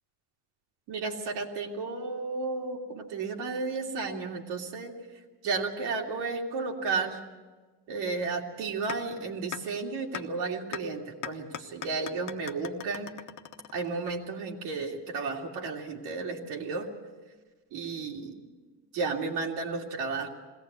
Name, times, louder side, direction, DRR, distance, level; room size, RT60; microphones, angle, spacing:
voice 1, 0.9-4.9 5.4-7.2 7.9-13.1 13.7-16.9 17.7-18.4 18.9-20.3, right 4 dB, 85° right, 1 dB, 3.0 m, -33 dB
sound 1, 8.9-9.0 9.5-9.6 10.1-10.2 10.7-10.8 11.2-14.2, left 10 dB, 50° left, 1.1 m, -38 dB
21.5 x 17.5 x 8.2 m, 1.3 s
cardioid pair, 160°, 39 cm